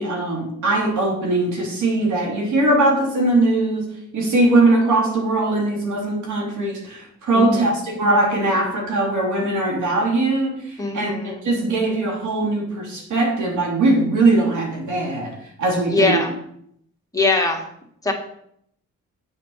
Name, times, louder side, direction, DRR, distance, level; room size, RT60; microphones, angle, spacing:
voice 1, 0.0-15.3 15.6-16.2, right 2 dB, 80° right, -1 dB, 3.1 m, -20 dB
voice 2, 10.8-11.4 15.9-16.3 17.1-17.6 18.0-18.1, left 2 dB, 10° left, -1 dB, 1.9 m, -21 dB
7.7 x 5.2 x 5.7 m, 0.71 s
cardioid pair, 90°, 30 cm